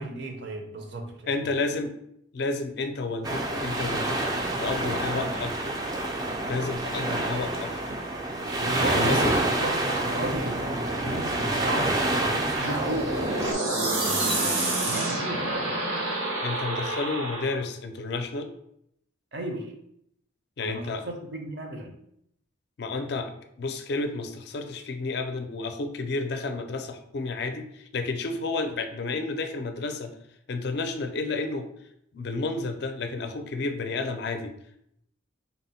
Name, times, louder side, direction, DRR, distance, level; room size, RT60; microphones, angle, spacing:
voice 1, 0.0-1.6 8.5-13.3 13.9-15.8 19.3-19.7 20.6-21.9, right 1 dB, 60° right, 3 dB, 0.6 m, -34 dB
voice 2, 1.3-1.9 2.3-4.3 4.6-5.7 6.5-7.8 8.8-9.3 16.4-18.5 20.6-21.0 22.8-30.1 30.5-31.7 32.1-34.5, left 3 dB, 55° left, 7 dB, 0.4 m, -31 dB
sound 1, 3.2-13.5, right 1 dB, 20° right, 0.3 m, -28 dB
sound 2, 12.5-17.6, right 2 dB, 85° right, 1.0 m, -28 dB
4.0 x 2.1 x 4.1 m, 0.74 s
head